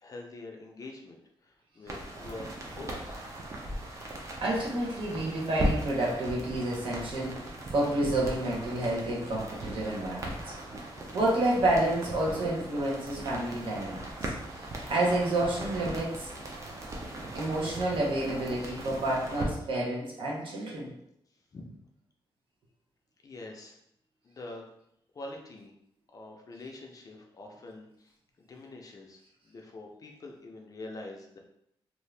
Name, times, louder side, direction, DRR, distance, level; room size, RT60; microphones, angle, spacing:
voice 1, 0.0-3.3 21.5-21.8 23.2-23.8 24.2-24.6 25.1-25.7 26.1-31.4, left 2 dB, 40° left, 1 dB, 0.5 m, -45 dB
sound 1, 1.9-19.4, right 1 dB, 30° right, 0.5 m, -38 dB
voice 2, 4.4-10.5 11.1-14.3 14.9-16.3 17.3-20.9, right 1 dB, 65° right, -3 dB, 0.9 m, -29 dB
2.7 x 2.4 x 3.2 m, 0.76 s
wide cardioid pair, 155°, 10 cm